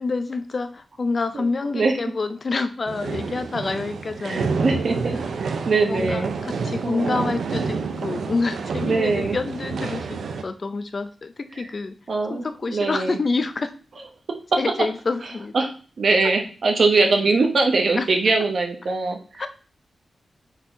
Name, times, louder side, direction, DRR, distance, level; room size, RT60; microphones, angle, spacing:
voice 1, 0.0-4.8 5.8-12.0 12.3-13.7 14.6-15.5 16.2-16.3 18.0-18.1 19.4-19.5, left 3 dB, 35° left, 10 dB, 0.5 m, -27 dB
sound 1, 2.9-10.4, right 5 dB, 80° right, 0.6 m, -29 dB
voice 2, 4.2-6.3 6.8-7.3 8.8-9.4 11.6-11.7 12.1-13.2 15.5-19.5, right 3 dB, 50° right, 4 dB, 1.0 m, -22 dB
4.6 x 4.2 x 5.0 m, 0.39 s
wide cardioid pair, 180°, 0 cm